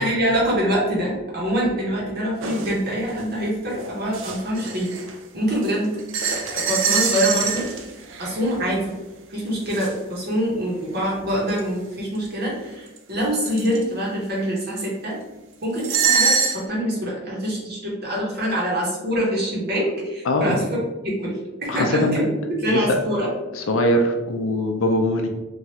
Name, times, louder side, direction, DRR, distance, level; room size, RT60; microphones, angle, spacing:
voice 1, 0.0-4.9 5.3-6.0 6.3-7.7 8.2-9.0 9.3-15.2 15.6-20.6 21.2-22.3 22.6-23.3, equal, 50° right, -4 dB, 0.9 m, -25 dB
sound 1, 2.4-2.7 3.2-3.3 3.7-5.1 5.5-8.5 9.7-9.9 11.5-11.6 12.2-12.3 13.0-13.1 13.3-13.8 15.8-16.6, right 6 dB, 70° right, 0.4 m, -24 dB
voice 2, 20.3-20.6 21.7-22.2 22.7-22.8 23.5-25.3, left 1 dB, 85° left, 4 dB, 0.5 m, -21 dB
3.0 x 2.3 x 2.8 m, 1.1 s
head